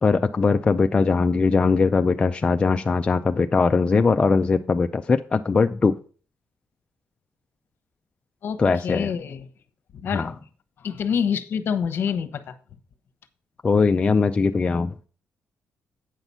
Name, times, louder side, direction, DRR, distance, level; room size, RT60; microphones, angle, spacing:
voice 1, 0.0-6.0 8.6-9.1 10.1-10.3 13.6-15.1, left 4 dB, 25° left, 6 dB, 0.4 m, -20 dB
voice 2, 8.4-9.5 9.9-10.2 10.8-12.6, left 7 dB, 55° left, 10 dB, 1.0 m, -27 dB
8.9 x 5.9 x 5.5 m, 0.40 s
cardioid pair, 135°, 4 cm